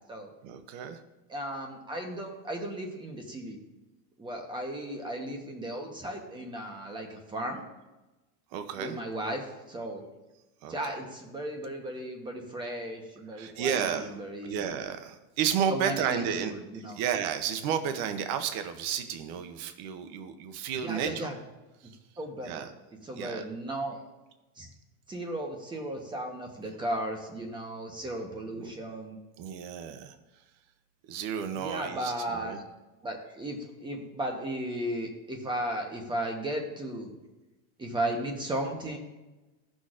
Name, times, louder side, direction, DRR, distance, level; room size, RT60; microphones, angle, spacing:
voice 1, 0.4-1.0 8.5-9.0 10.6-10.7 13.3-14.2 14.4-21.3 22.4-22.7 23.1-23.4 28.6-28.7 29.4-30.2 31.1-32.6, right 8 dB, 50° right, 8 dB, 0.8 m, -32 dB
voice 2, 1.3-3.6 4.2-7.6 8.8-10.0 10.7-14.6 15.7-17.0 20.7-21.4 22.2-22.7 23.0-24.0 24.6-24.7 25.1-29.2 31.6-32.6 33.0-37.1 37.8-39.0, right 1 dB, 10° right, 2 dB, 1.0 m, -35 dB
14.5 x 6.3 x 2.5 m, 1.1 s
supercardioid pair, 155°, 43 cm